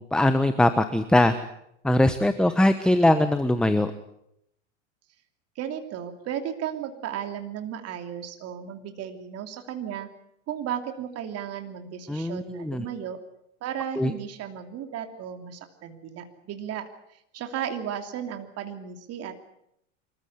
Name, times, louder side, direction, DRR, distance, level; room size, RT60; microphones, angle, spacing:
voice 1, 0.0-1.4 1.8-3.9 12.1-12.8 14.0-14.1, left 1 dB, ahead, 10 dB, 1.1 m, -21 dB
voice 2, 5.6-10.1 10.5-13.2 13.6-16.9 17.3-19.4, right 9 dB, 40° right, 6 dB, 2.9 m, -34 dB
25.0 x 15.0 x 9.6 m, 0.78 s
hypercardioid pair, 110°, 37 cm